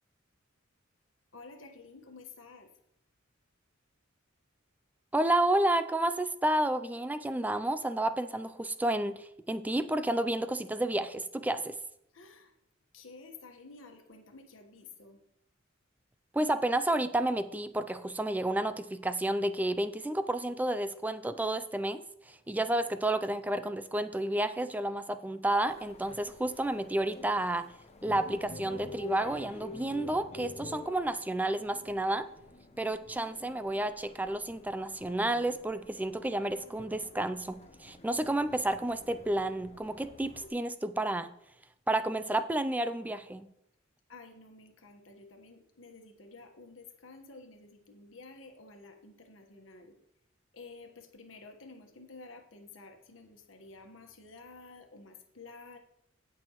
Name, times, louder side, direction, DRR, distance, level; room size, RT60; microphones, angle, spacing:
voice 1, 1.3-2.7 12.1-12.5 12.9-15.2 44.1-49.9 50.5-55.8, left 3 dB, 70° left, 5 dB, 1.3 m, -51 dB
voice 2, 5.1-11.8 16.3-27.7 28.0-32.3 32.8-41.3 41.9-43.5, right 1 dB, 10° right, 12 dB, 0.3 m, -31 dB
sound 1, 25.6-40.5, left 3 dB, 30° left, 0.7 m, -48 dB
16.0 x 6.2 x 3.0 m, 0.78 s
head